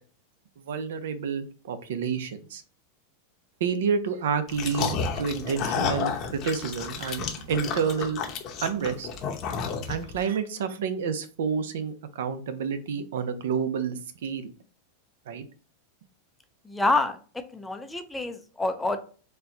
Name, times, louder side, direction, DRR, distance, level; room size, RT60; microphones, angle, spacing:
voice 1, 0.7-2.6 3.6-8.2 8.6-9.1 9.9-14.5 15.3-15.4, right 6 dB, 80° right, 10 dB, 0.6 m, -29 dB
sound 1, 4.5-10.2, left 6 dB, 35° left, 0.7 m, -31 dB
voice 2, 16.6-19.0, left 2 dB, 5° left, 7 dB, 0.4 m, -28 dB
4.4 x 2.3 x 3.8 m, 0.38 s
supercardioid pair, 150°, 0 cm